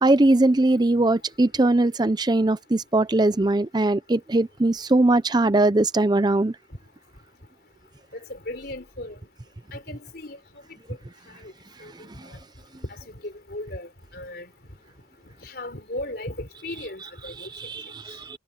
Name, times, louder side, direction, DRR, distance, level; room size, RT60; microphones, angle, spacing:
voice 1, 0.0-6.5 17.4-18.4, right 2 dB, 25° right, 0.6 m, -21 dB
voice 2, 8.1-9.2 9.7-10.4 10.9-11.0 11.4-11.5 11.8-12.4 12.9-14.5 15.4-17.5, left 1 dB, 60° left, 4.1 m, -37 dB
head